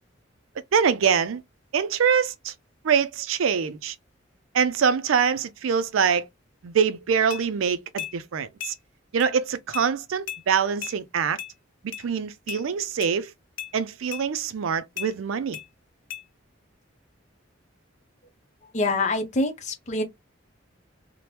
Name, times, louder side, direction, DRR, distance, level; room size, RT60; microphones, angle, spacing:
voice 1, 0.7-1.4 1.7-2.5 2.8-3.9 4.5-6.3 6.6-8.7 9.1-11.4 11.8-13.3 13.7-15.6, right 6 dB, 85° right, 0.4 m, -24 dB
sound 1, 7.3-7.4 8.0-8.1 8.6-8.7 9.2-9.3 9.7-9.9 10.3-10.4 10.8-11.0 11.4-11.5 11.9-12.0 12.5-12.6 13.0-13.1 13.6-13.7 14.1-14.2 15.0-15.1 15.5-15.7 16.1-16.2, left 11 dB, 85° left, 0.5 m, -35 dB
voice 2, 18.7-20.0, left 2 dB, 35° left, 0.6 m, -25 dB
2.9 x 2.1 x 3.2 m
head